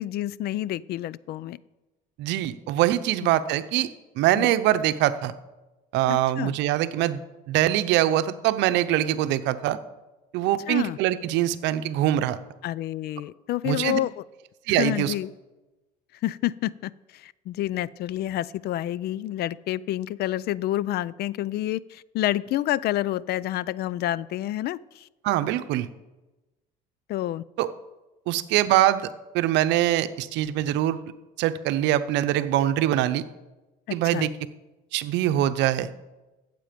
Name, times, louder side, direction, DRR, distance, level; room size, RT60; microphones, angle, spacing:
voice 1, 0.0-1.6 4.3-4.5 6.1-6.5 10.7-11.0 12.6-14.2 14.8-15.3 16.2-25.1 27.1-27.4 33.9-34.3, left 14 dB, 60° left, 21 dB, 0.4 m, -29 dB
voice 2, 2.2-3.9 4.2-5.3 5.9-7.2 7.5-9.8 10.3-12.4 13.6-14.0 14.7-15.1 25.2-25.9 27.6-27.7 28.3-29.1 29.3-31.0 31.4-33.2 33.9-34.3 34.9-35.9, right 13 dB, 75° right, 12 dB, 0.7 m, -23 dB
14.5 x 7.7 x 5.2 m, 1.1 s
supercardioid pair, 90°, 19 cm